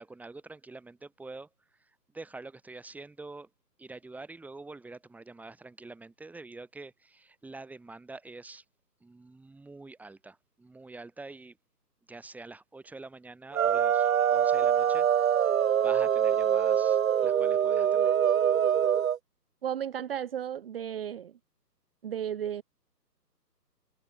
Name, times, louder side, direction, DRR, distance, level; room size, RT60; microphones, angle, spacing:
voice 1, 0.0-1.5 1.8-3.5 3.8-8.6 9.0-11.6 12.1-15.4 15.7-18.2, right 3 dB, 5° right, 5.6 m, -46 dB
sound 1, 13.5-19.2, right 9 dB, 55° right, 0.5 m, -24 dB
voice 2, 19.6-21.3 22.0-22.6, right 9 dB, 35° right, 1.4 m, -34 dB
figure-of-eight pair, 150°, 50 cm